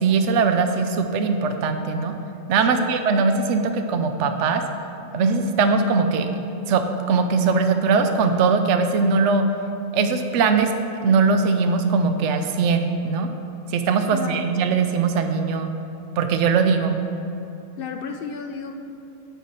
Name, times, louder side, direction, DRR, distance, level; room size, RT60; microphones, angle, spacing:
voice 1, 0.0-2.1 2.5-4.6 5.1-6.3 6.7-6.8 7.1-9.4 9.9-10.7 11.0-13.3 13.7-15.7 16.2-16.9, right 4 dB, 65° right, 6 dB, 0.9 m, -20 dB
voice 2, 14.1-14.5 17.8-18.7, left 6 dB, 70° left, 5 dB, 0.5 m, -32 dB
9.2 x 4.7 x 5.5 m, 2.9 s
omnidirectional pair, 1.4 m